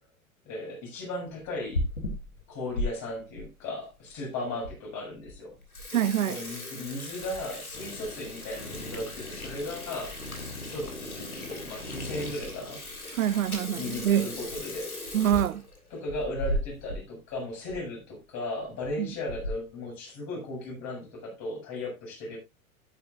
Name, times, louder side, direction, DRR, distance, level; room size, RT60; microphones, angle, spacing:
voice 1, 0.4-1.9 2.5-5.6 6.2-10.1 10.7-12.8 13.8-14.9 15.9-22.4, left 1 dB, 40° left, 7.5 m, -36 dB
Water tap faucet / Sink (filling or washing), 1.4-2.9 3.4-3.5 4.2-4.3 4.6-4.7 5.1-5.3 5.6-17.0 17.3-17.4 17.7-17.8 18.6-18.9 19.3-19.7, left 1 dB, 90° left, 2.9 m, -36 dB
voice 2, 5.9-6.4 13.1-14.3 15.1-15.6 19.0-19.1, right 11 dB, 70° right, 0.7 m, -25 dB
sound 1, 7.7-14.4, left 1 dB, 70° left, 7.1 m, -43 dB
12.5 x 10.5 x 2.6 m
figure-of-eight pair, 95°, 42 cm